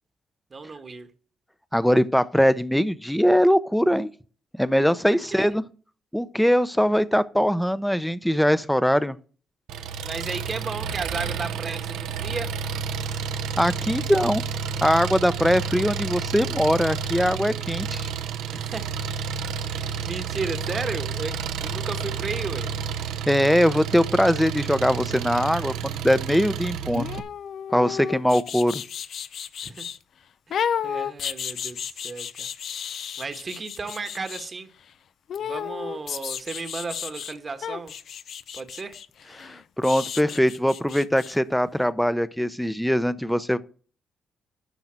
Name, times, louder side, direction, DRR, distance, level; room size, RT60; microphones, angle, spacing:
voice 1, 0.5-1.1 5.1-5.5 10.0-12.5 18.5-18.9 19.7-22.7 29.6-29.9 30.5-32.5 33.2-34.7 35.4-38.0 38.5-39.0, right 4 dB, 35° right, 1.3 m, -34 dB
voice 2, 1.7-4.1 4.6-5.6 6.1-9.2 13.6-14.4 14.8-18.1 23.3-27.1 27.7-28.8 39.4-43.6, equal, ahead, 0.7 m, -21 dB
Engine, 9.7-27.2, right 6 dB, 85° right, 0.9 m, -30 dB
sound 1, 26.9-30.0 30.5-34.5 35.3-37.3 37.6-41.4 41.7-41.8, left 8 dB, 65° left, 0.6 m, -33 dB
12.0 x 4.0 x 7.5 m
cardioid pair, 90°, 0 cm